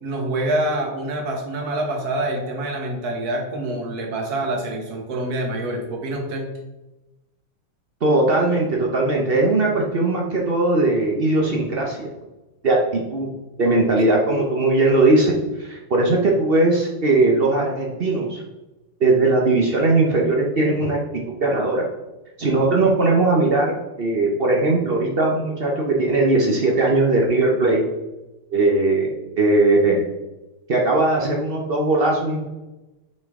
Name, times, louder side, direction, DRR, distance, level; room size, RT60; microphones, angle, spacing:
voice 1, 0.0-6.5, right 1 dB, 50° right, 1 dB, 1.7 m, -26 dB
voice 2, 8.0-12.1 12.6-13.3 13.6-15.3 15.6-18.4 19.0-21.8 22.4-27.8 28.5-29.1 29.4-30.0 30.7-32.5, right 2 dB, 70° right, 0 dB, 0.5 m, -19 dB
6.6 x 5.4 x 3.6 m, 1.0 s
omnidirectional pair, 2.3 m